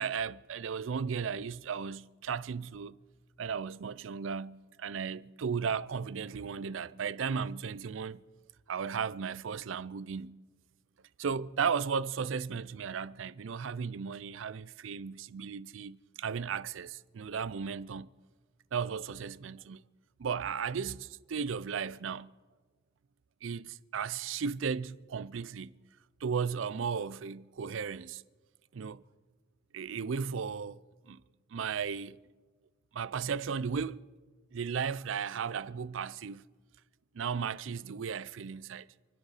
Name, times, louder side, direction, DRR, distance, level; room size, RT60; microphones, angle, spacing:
voice 1, 0.0-3.0 3.4-8.2 8.7-10.4 11.2-18.1 18.7-19.8 20.2-22.3 23.4-25.7 26.2-28.2 28.7-29.0 29.7-30.8 31.1-31.2 31.5-32.2 32.9-34.1 34.5-36.4 37.1-38.9, right 6 dB, 80° right, 0.4 m, -35 dB
28.5 x 10.0 x 4.1 m
head